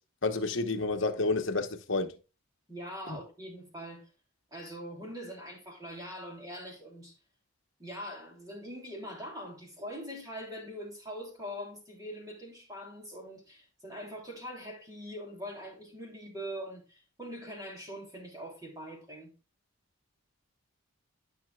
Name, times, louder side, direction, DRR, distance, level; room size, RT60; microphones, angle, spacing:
voice 1, 0.2-2.2 3.1-3.2, left 3 dB, 60° left, 1.0 m, -30 dB
voice 2, 2.7-4.1 4.5-7.2 7.8-19.3, equal, 15° right, 3.1 m, -43 dB
13.0 x 5.7 x 2.3 m
head